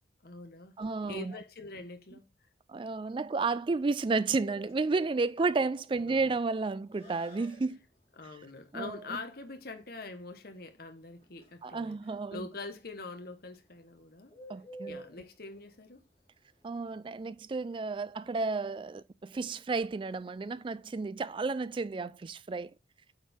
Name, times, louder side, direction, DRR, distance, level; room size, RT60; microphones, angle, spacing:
voice 1, 0.2-0.8 1.0-2.3 6.0-6.4 8.2-12.0 12.3-14.3 14.9-16.0, left 3 dB, 55° left, 1.1 m, -44 dB
voice 2, 0.8-1.3 2.7-7.8 8.7-9.2 11.6-12.5 14.5-15.0 16.6-22.7, right 3 dB, 25° right, 0.3 m, -32 dB
Bird, 4.4-17.4, right 1 dB, 30° left, 3.3 m, -53 dB
8.3 x 4.5 x 3.5 m
head